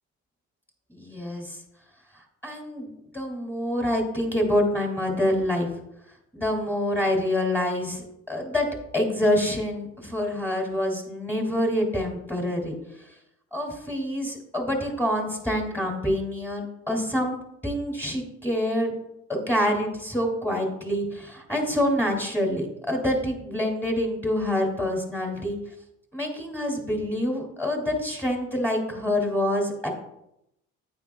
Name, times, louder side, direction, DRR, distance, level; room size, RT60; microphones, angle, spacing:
voice 1, 0.9-1.6 2.4-5.7 6.3-8.7 8.9-12.7 13.5-18.9 19.3-25.6 26.1-29.9, left 1 dB, 5° left, 1 dB, 2.3 m, -26 dB
9.5 x 8.9 x 2.3 m, 0.82 s
cardioid pair, 90°, 30 cm